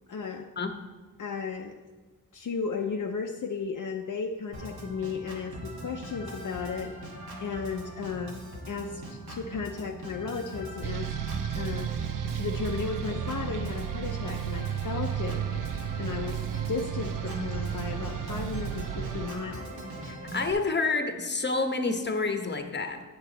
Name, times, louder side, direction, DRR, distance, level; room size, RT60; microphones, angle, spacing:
voice 1, 0.1-0.5 1.2-1.8 2.3-7.0 7.4-8.4 8.7-11.1 11.5-11.9 12.3-15.5 16.0-19.8, left 5 dB, 60° left, 3 dB, 0.6 m, -34 dB
Organ, 4.5-20.5, right 1 dB, 85° right, 1.5 m, -41 dB
sound 1, 10.8-19.3, right 10 dB, 60° right, 0.5 m, -33 dB
voice 2, 20.1-23.0, left 3 dB, 30° left, 6 dB, 0.9 m, -28 dB
8.4 x 6.6 x 3.9 m, 1.3 s
cardioid pair, 60°, 36 cm